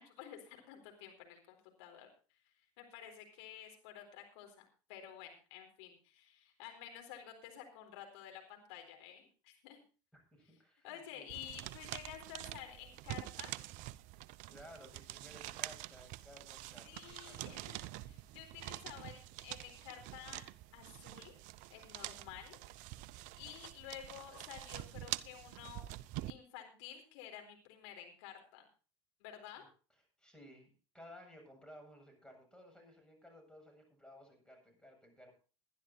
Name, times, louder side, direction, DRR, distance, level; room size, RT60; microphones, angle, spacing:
voice 1, 0.0-2.1 2.8-9.8 10.8-13.5 16.8-20.4 20.7-21.3 21.7-22.6 23.4-25.9 26.3-28.7 29.2-29.6, left 10 dB, 70° left, 4 dB, 4.1 m, -51 dB
voice 2, 10.1-11.3 14.5-17.7 29.6-29.7 30.2-35.3, equal, 5° left, 3 dB, 7.5 m, -57 dB
sound 1, 11.3-26.3, right 16 dB, 60° right, 0.6 m, -46 dB
21.0 x 11.5 x 2.9 m, 0.36 s
hypercardioid pair, 70°, 15 cm